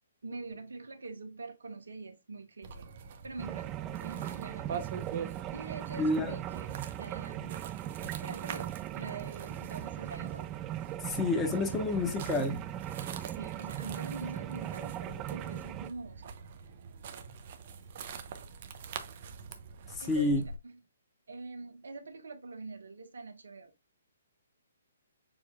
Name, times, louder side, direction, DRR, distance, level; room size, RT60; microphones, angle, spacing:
voice 1, 0.2-2.9 3.2-4.9 5.5-7.6 8.2-10.6 12.9-16.3 20.0-20.7 21.3-23.7, right 3 dB, 75° right, 1.1 m, -44 dB
sound 1, 2.6-20.6, right 6 dB, 45° right, 0.8 m, -45 dB
sound 2, 3.4-15.9, right 13 dB, 25° right, 0.3 m, -39 dB
voice 2, 6.0-6.3 11.0-12.7 19.9-20.4, left 2 dB, 15° left, 1.1 m, -29 dB
7.0 x 3.0 x 2.4 m
figure-of-eight pair, 130°, 0 cm